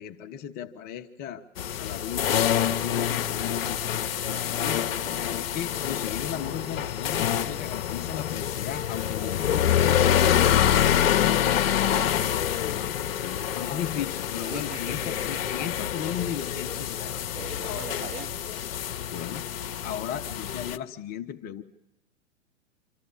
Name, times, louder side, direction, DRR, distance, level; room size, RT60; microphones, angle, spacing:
voice 1, 0.0-1.4 1.8-4.9 5.4-11.3 12.5-17.3 19.1-19.5 19.8-21.6, left 9 dB, 25° left, 0.9 m, -36 dB
sound 1, 1.6-20.8, left 10 dB, 50° left, 1.0 m, -26 dB
voice 2, 5.1-5.4 9.1-9.4 11.8-12.1 14.4-15.5 17.3-18.4, right 4 dB, 25° right, 1.3 m, -42 dB
26.5 x 13.5 x 8.8 m
figure-of-eight pair, 105°, 38 cm